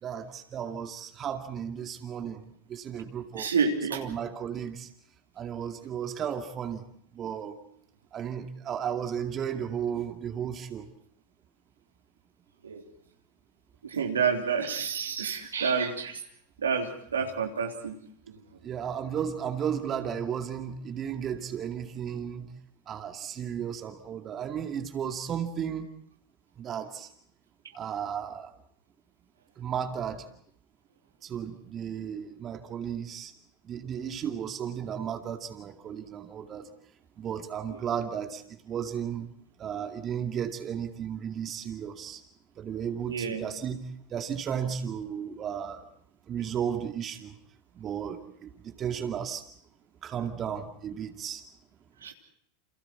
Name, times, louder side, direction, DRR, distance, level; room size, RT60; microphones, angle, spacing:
voice 1, 0.0-3.5 3.9-4.9 5.4-6.8 7.1-7.6 8.1-10.9 18.6-22.5 22.9-25.9 26.6-27.1 27.7-28.5 29.6-30.3 31.2-33.3 33.6-36.7 37.2-39.3 39.6-42.2 42.6-45.8 46.3-47.4 47.7-49.4 50.0-51.4, right 8 dB, 35° right, 5 dB, 2.3 m, -34 dB
voice 2, 3.3-4.0 12.6-12.8 13.8-16.2 16.6-17.9 43.1-43.4 52.0-52.1, right 6 dB, 85° right, 3 dB, 3.1 m, -29 dB
29.5 x 28.0 x 4.5 m, 0.66 s
hypercardioid pair, 90°, 0 cm